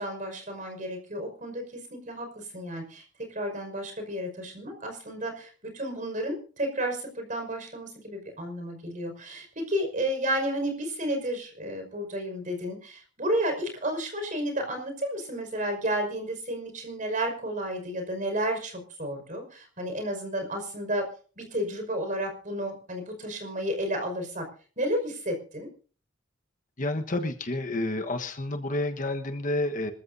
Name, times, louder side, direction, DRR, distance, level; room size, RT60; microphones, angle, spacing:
voice 1, 0.0-3.0 3.3-21.0 21.4-24.5 24.8-25.7, right 1 dB, 40° right, 5 dB, 5.5 m, -32 dB
voice 2, 26.8-29.9, left 2 dB, 40° left, 6 dB, 1.3 m, -29 dB
26.0 x 14.0 x 2.7 m, 0.40 s
head